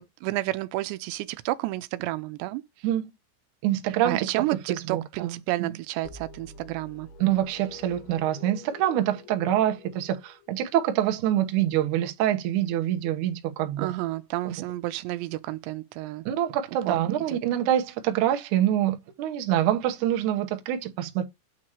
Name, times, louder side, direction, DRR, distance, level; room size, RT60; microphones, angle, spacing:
voice 1, 0.0-2.6 3.9-7.1 13.8-16.3 16.9-17.0 17.3-17.4, right 17 dB, 90° right, 2.8 m, -31 dB
voice 2, 3.6-4.3 4.9-5.3 5.6-5.7 7.2-13.9 16.3-21.3, right 12 dB, 70° right, 1.9 m, -25 dB
sound 1, 6.0-10.8, left 4 dB, 75° left, 3.0 m, -47 dB
8.6 x 2.9 x 6.1 m
omnidirectional pair, 4.9 m